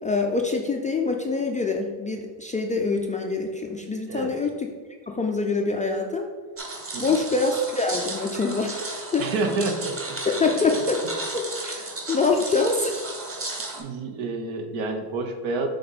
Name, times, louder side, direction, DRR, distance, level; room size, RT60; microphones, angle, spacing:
voice 1, 0.0-4.7 5.1-6.3 7.0-9.2 10.2-11.1 11.3-13.0, left 3 dB, 15° left, 1 dB, 0.3 m, -25 dB
sound 1, 6.6-13.8, right 2 dB, 25° right, 1.4 m, -34 dB
voice 2, 9.2-10.2 13.7-15.7, right 3 dB, 65° right, 6 dB, 1.1 m, -29 dB
6.8 x 3.6 x 4.0 m, 1.5 s
cardioid pair, 110°, 49 cm